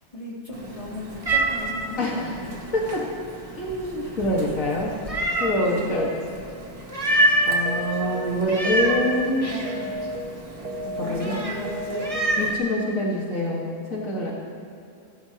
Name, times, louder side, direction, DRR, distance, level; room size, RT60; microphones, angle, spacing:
voice 1, 0.1-2.6 3.7-4.1 4.4-4.5 5.6-5.9 9.4-9.7 11.0-12.2, left 1 dB, 25° left, -6 dB, 3.3 m, -37 dB
Meow, 0.5-12.5, right 1 dB, 25° right, 1.5 m, -28 dB
voice 2, 2.0-2.3 2.7-3.1 3.6-4.9 5.4-6.1 7.4-10.0 11.0-11.4 12.4-14.3, left 1 dB, 75° left, -3 dB, 2.2 m, -25 dB
sound 1, 7.7-8.2 8.7-9.2 9.7-10.2 10.7-11.2 11.7-12.2, equal, 45° right, 1.5 m, -32 dB
28.5 x 13.5 x 3.0 m, 2.4 s
omnidirectional pair, 1.4 m